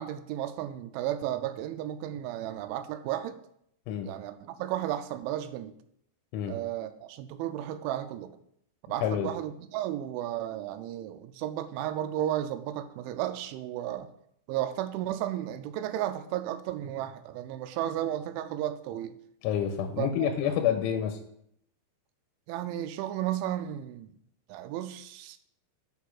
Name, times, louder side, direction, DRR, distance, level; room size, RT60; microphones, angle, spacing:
voice 1, 0.0-3.4 4.1-5.7 6.5-8.3 8.9-14.1 14.5-19.1 20.0-20.5 22.5-24.1 24.5-25.4, right 12 dB, 85° right, 2.8 m, -33 dB
voice 2, 9.0-9.3 19.4-21.2, left 9 dB, 85° left, 3.0 m, -28 dB
8.3 x 5.5 x 5.9 m
omnidirectional pair, 5.7 m